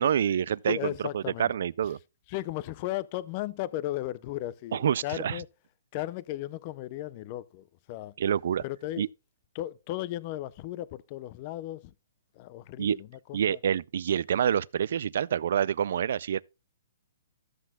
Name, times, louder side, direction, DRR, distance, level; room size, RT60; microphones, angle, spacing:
voice 1, 0.0-2.0 4.7-5.4 8.2-8.6 9.0-9.1 12.8-13.0 13.3-16.4, right 9 dB, 55° right, 0.3 m, -27 dB
voice 2, 0.7-1.5 2.3-5.5 5.9-8.1 8.6-9.1 9.5-11.9 12.4-13.6, left 15 dB, 30° left, 0.5 m, -35 dB
13.5 x 7.9 x 2.3 m
hypercardioid pair, 170°, 0 cm